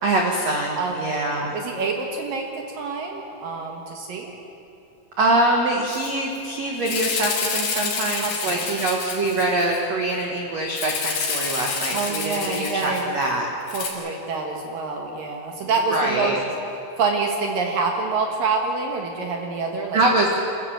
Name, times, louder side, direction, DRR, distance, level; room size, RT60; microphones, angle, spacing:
voice 1, 0.0-1.6 5.2-13.5 15.9-16.4 19.9-20.5, right 2 dB, 90° right, 0 dB, 1.4 m, -24 dB
voice 2, 0.8-4.3 8.2-8.6 11.9-13.1 13.7-16.4 17.0-20.0, right 4 dB, 65° right, 2 dB, 2.4 m, -26 dB
Rattle (instrument), 5.9-6.1 6.4-6.5 6.8-9.8 10.7-13.3 13.7-13.9, left 5 dB, 65° left, 4.7 m, -28 dB
25.0 x 14.0 x 7.7 m, 2.8 s
omnidirectional pair, 5.6 m